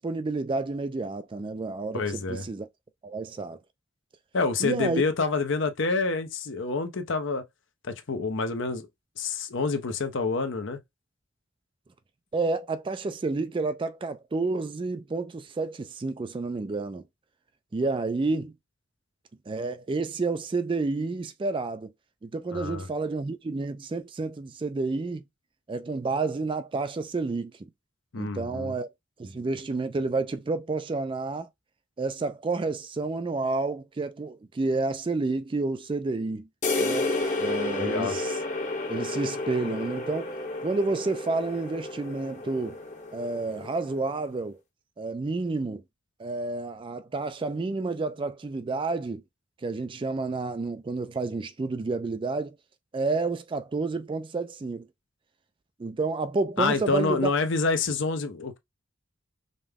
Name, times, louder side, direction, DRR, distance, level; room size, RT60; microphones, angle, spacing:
voice 1, 0.0-2.7 3.0-3.6 4.6-5.0 12.3-17.0 17.7-18.5 19.5-21.9 22.2-25.2 25.7-27.7 28.2-28.9 29.2-31.5 32.0-36.5 36.8-37.1 37.4-38.4 38.9-40.3 40.6-42.8 43.1-44.6 45.0-45.8 46.2-49.2 49.6-52.6 52.9-54.9 55.8-57.3, right 3 dB, 25° right, 0.3 m, -30 dB
voice 2, 1.9-2.4 4.3-7.4 7.8-8.9 9.2-10.8 22.5-22.9 28.1-28.7 37.8-38.2 56.6-58.6, left 4 dB, 65° left, 0.7 m, -27 dB
sound 1, 36.6-44.2, left 2 dB, 35° left, 1.0 m, -31 dB
5.2 x 2.2 x 3.5 m
head